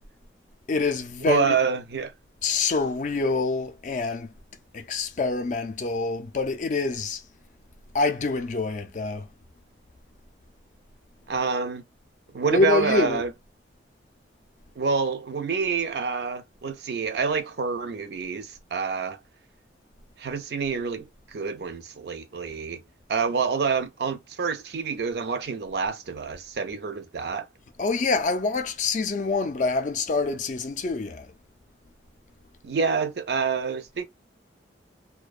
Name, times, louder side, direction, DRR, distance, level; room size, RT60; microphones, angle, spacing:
voice 1, 0.7-1.6 2.4-4.3 4.7-7.2 7.9-9.3 12.5-13.2 27.8-31.3, left 3 dB, 40° left, 0.3 m, -26 dB
voice 2, 1.3-2.1 11.3-11.8 12.3-13.3 14.8-19.2 20.2-22.8 23.1-27.5 32.6-34.0, right 5 dB, 60° right, 0.4 m, -27 dB
2.5 x 2.1 x 2.4 m
head